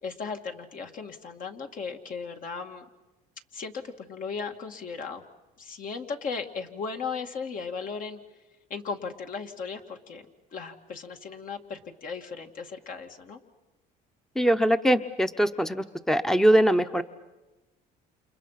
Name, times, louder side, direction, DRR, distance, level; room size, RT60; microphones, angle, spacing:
voice 1, 0.0-2.8 3.5-5.2 5.6-8.2 8.7-10.2 10.5-13.4, left 5 dB, 55° left, 4 dB, 2.3 m, -36 dB
voice 2, 14.4-17.0, right 1 dB, 5° left, 10 dB, 0.9 m, -22 dB
29.5 x 28.5 x 5.9 m, 1.1 s
cardioid pair, 110°, 17 cm